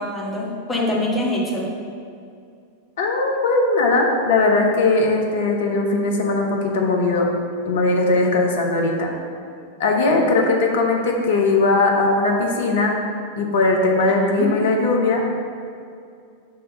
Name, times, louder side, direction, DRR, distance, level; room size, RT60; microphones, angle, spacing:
voice 1, 0.0-1.7 14.2-14.5, left 1 dB, 15° left, -4 dB, 1.3 m, -24 dB
voice 2, 3.0-7.3 7.6-9.1 9.8-12.9 13.4-15.2, left 3 dB, 60° left, 1 dB, 0.9 m, -19 dB
5.7 x 3.4 x 5.2 m, 2.4 s
figure-of-eight pair, 90°, 0 cm